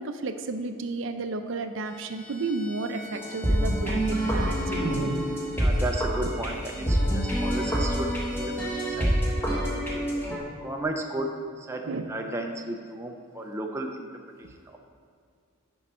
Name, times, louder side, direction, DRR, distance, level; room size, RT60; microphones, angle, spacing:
voice 1, 0.0-5.3 11.9-12.1, right 3 dB, 65° right, 8 dB, 0.5 m, -32 dB
Bowed string instrument, 1.8-9.2, left 2 dB, 35° left, 1.0 m, -46 dB
sound 1, 3.1-10.4, equal, 10° left, 1.2 m, -27 dB
voice 2, 5.6-10.1 10.6-14.1 14.4-14.8, right 2 dB, 15° right, 2 dB, 0.4 m, -34 dB
11.0 x 4.6 x 4.3 m, 2.2 s
head